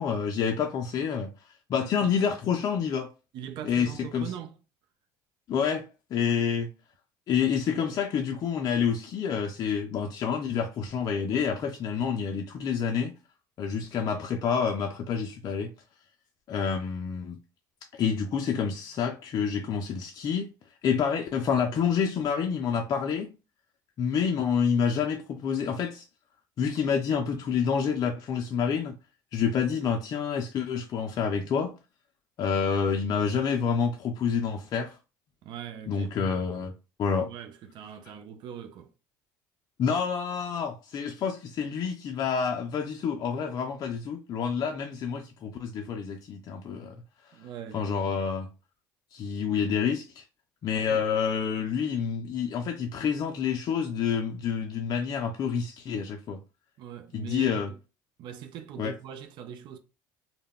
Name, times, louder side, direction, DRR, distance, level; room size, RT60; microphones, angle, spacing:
voice 1, 0.0-3.1 3.6-4.3 5.5-6.7 7.3-13.1 13.6-15.7 16.5-17.4 17.9-20.5 20.8-23.3 24.0-26.1 26.6-29.0 29.3-31.7 32.4-35.0 35.9-36.7 37.0-37.3 39.8-47.0 47.2-47.3 47.7-48.5 49.1-50.2 50.6-56.4 57.1-57.7 58.8-58.9, left 6 dB, 45° left, 0.4 m, -28 dB
voice 2, 1.8-2.1 3.3-4.6 35.4-36.2 37.2-38.9 47.3-47.8 50.9-51.0 56.8-57.8 58.2-59.8, right 9 dB, 60° right, 0.5 m, -41 dB
2.2 x 2.0 x 3.5 m
supercardioid pair, 85°, 9 cm